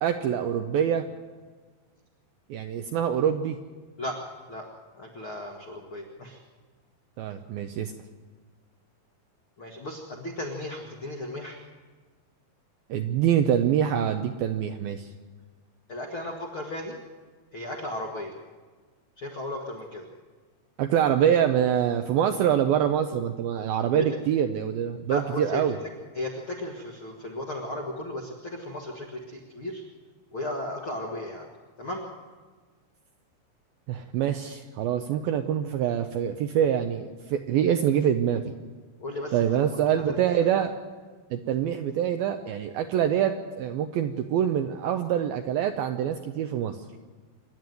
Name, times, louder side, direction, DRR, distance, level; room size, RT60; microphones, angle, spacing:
voice 1, 0.0-1.1 2.5-3.6 7.2-7.9 12.9-15.1 20.8-25.8 33.9-38.5 39.3-40.7 41.3-46.8, right 9 dB, 80° right, 7 dB, 2.2 m, -25 dB
voice 2, 4.0-4.6 5.0-6.4 9.6-11.6 15.9-16.9 17.5-18.3 19.2-20.1 23.9-24.0 25.1-25.9 26.1-29.8 30.3-31.5 31.8-32.1 39.0-39.6 40.1-40.4, left 1 dB, 65° left, 0 dB, 1.3 m, -35 dB
26.5 x 11.0 x 9.2 m, 1.4 s
omnidirectional pair, 5.1 m